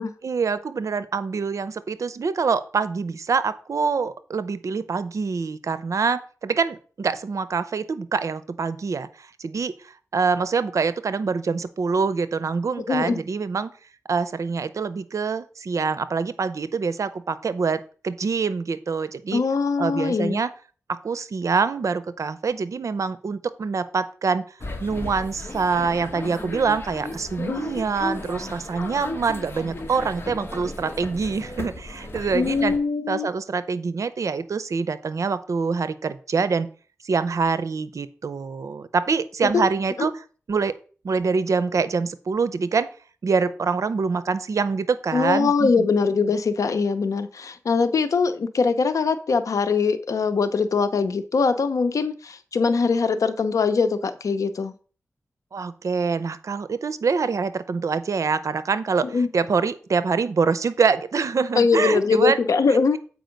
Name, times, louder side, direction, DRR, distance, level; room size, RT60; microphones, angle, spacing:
voice 1, 0.2-13.7 14.1-19.4 19.8-20.5 20.9-24.4 24.8-32.7 33.1-36.7 37.0-40.8 41.0-42.9 43.2-45.9 55.5-62.4, right 5 dB, 70° right, 15 dB, 0.6 m, -25 dB
voice 2, 12.9-13.2 19.3-20.4 27.4-27.6 32.3-33.3 39.5-39.7 45.1-54.7 59.1-59.3 61.5-63.0, left 4 dB, 80° left, 11 dB, 0.8 m, -22 dB
sound 1, 24.6-32.8, left 2 dB, 40° left, 1.8 m, -35 dB
7.8 x 5.0 x 5.2 m, 0.40 s
wide cardioid pair, 70°, 6 cm